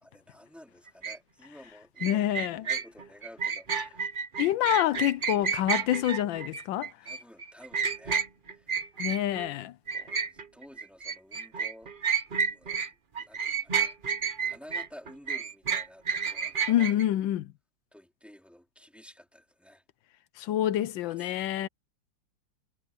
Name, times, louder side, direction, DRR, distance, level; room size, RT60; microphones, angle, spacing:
voice 1, 0.0-4.1 7.0-8.2 8.5-8.7 9.9-11.9 12.5-14.0 14.4-17.2 17.9-19.8 21.0-21.3, equal, ahead, 3.3 m, -52 dB
sound 1, 1.0-1.2 2.0-9.5 9.9-12.9 13.1-17.0, right 6 dB, 35° right, 1.0 m, -30 dB
voice 2, 2.0-2.6 4.4-6.9 9.0-9.7 16.7-17.5 20.4-21.7, left 12 dB, 85° left, 1.4 m, -27 dB
omnidirectional pair, 2.0 m